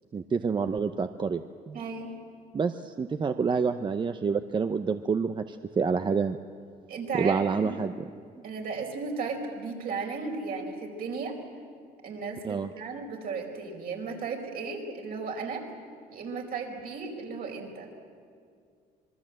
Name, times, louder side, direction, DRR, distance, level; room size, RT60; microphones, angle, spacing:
voice 1, 0.1-1.4 1.7-1.8 2.5-6.4 7.2-7.9 12.4-12.7, right 5 dB, 30° right, 8 dB, 0.7 m, -28 dB
voice 2, 1.7-2.1 6.9-7.8 8.4-11.4 12.0-15.7 16.1-17.9, right 4 dB, 60° right, 2 dB, 4.9 m, -35 dB
26.0 x 21.5 x 7.7 m, 2.3 s
cardioid pair, 110°, 17 cm